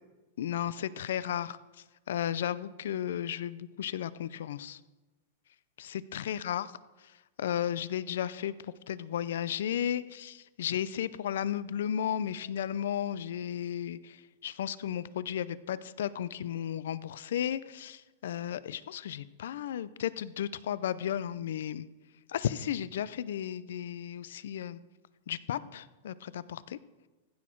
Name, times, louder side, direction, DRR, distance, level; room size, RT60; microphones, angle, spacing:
voice 1, 0.4-1.6 2.1-4.8 5.8-6.7 7.4-8.5 8.9-14.2 14.4-21.9 22.3-24.8 25.3-26.8, left 10 dB, 70° left, 18 dB, 0.4 m, -34 dB
15.0 x 6.3 x 4.5 m, 1.2 s
supercardioid pair, 175°, 0 cm